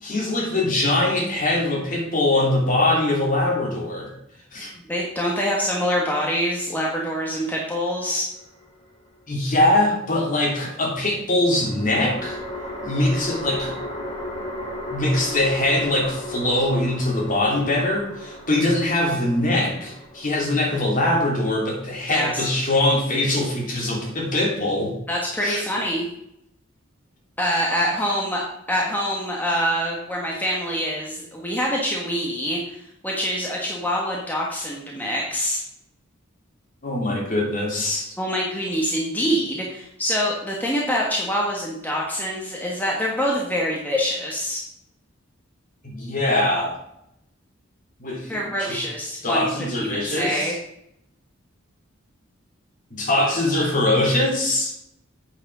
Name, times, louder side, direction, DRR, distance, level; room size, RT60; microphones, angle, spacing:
voice 1, 0.0-4.1 4.5-4.8 9.3-12.4 12.8-13.7 14.9-24.9 25.4-25.6 36.8-38.1 45.8-46.8 48.0-48.8 49.2-50.5 52.9-54.7, left 1 dB, 40° left, -2 dB, 3.1 m, -22 dB
voice 2, 4.9-8.2 22.1-22.4 25.1-26.0 27.4-28.4 28.7-32.8 33.0-35.6 38.2-44.6 48.3-49.5 49.8-50.5, equal, 10° left, -2 dB, 1.3 m, -25 dB
sound 1, 8.3-9.2 11.5-22.8, left 1 dB, 25° left, 2.7 m, -36 dB
8.5 x 6.1 x 6.1 m, 0.78 s
head